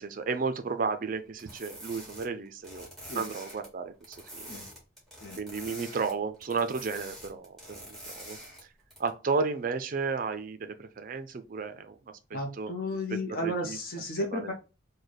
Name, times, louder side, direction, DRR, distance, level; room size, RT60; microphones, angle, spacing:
voice 1, 0.0-2.9 3.1-4.6 5.4-8.4 9.0-12.0 12.3-12.7 13.1-13.8 14.2-14.5, right 4 dB, 45° right, 0.4 m, -33 dB
sound 1, 1.4-3.7 4.0-6.1 6.4-8.6 8.9-9.1, right 1 dB, ahead, 1.4 m, -45 dB
voice 2, 12.3-14.5, left 1 dB, 50° left, 0.7 m, -33 dB
3.2 x 2.2 x 3.9 m
head